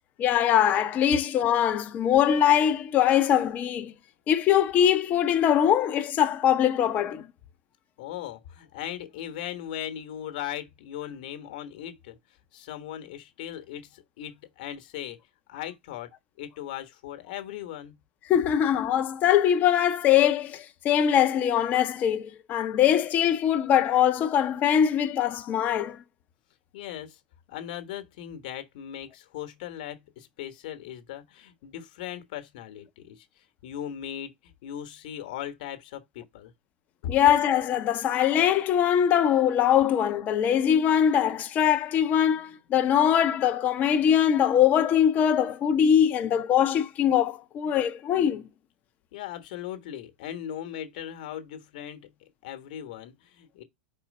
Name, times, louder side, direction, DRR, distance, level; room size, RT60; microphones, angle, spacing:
voice 1, 0.2-3.9 4.3-7.3 18.3-26.0 37.1-48.4, left 9 dB, 35° left, 0.8 m, -22 dB
voice 2, 8.0-12.2 12.5-15.2 15.5-16.1 16.4-18.0 26.7-27.2 27.5-36.5 37.0-37.1 49.1-52.1 52.4-53.6, left 11 dB, 60° left, 1.3 m, -38 dB
4.8 x 4.4 x 5.2 m
hypercardioid pair, 105°, 5 cm